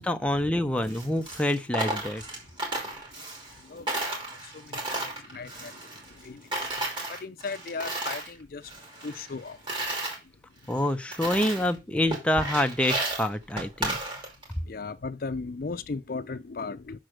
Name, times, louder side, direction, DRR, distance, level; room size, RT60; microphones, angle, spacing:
voice 1, 0.0-2.2 10.7-14.0, left 1 dB, 5° left, 0.5 m, -27 dB
Coin (dropping), 0.8-3.6 3.9-6.3 6.5-8.3 8.6-10.2 10.7-10.8 11.1-11.8 12.1-14.5, right 2 dB, 25° right, 2.6 m, -33 dB
voice 2, 3.6-8.7 9.0-9.6 11.9-12.0 14.6-17.0, left 4 dB, 50° left, 0.5 m, -38 dB
6.4 x 4.3 x 6.4 m
head